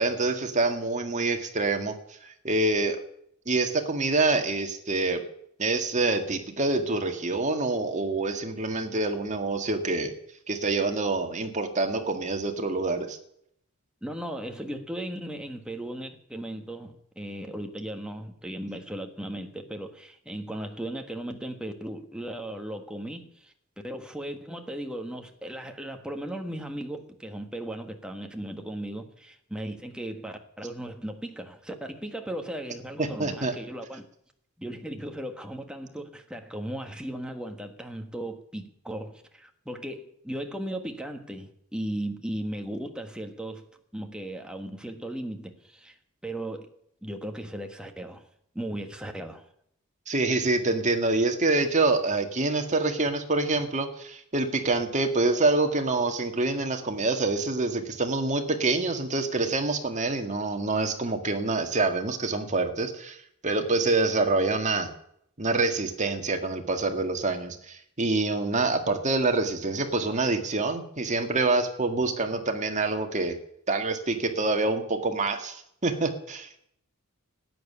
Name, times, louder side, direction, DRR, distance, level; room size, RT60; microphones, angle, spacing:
voice 1, 0.0-2.0 2.2-3.0 3.5-5.2 5.6-10.1 10.5-13.2 33.0-33.5 50.1-63.2 63.4-64.9 65.4-73.4 73.7-76.7, right 3 dB, 35° right, 1.9 m, -26 dB
voice 2, 14.0-23.5 23.8-34.0 34.6-43.6 43.9-46.0 46.2-46.7 47.0-48.3 48.5-49.4, right 1 dB, 5° right, 1.5 m, -36 dB
12.5 x 9.4 x 9.9 m
head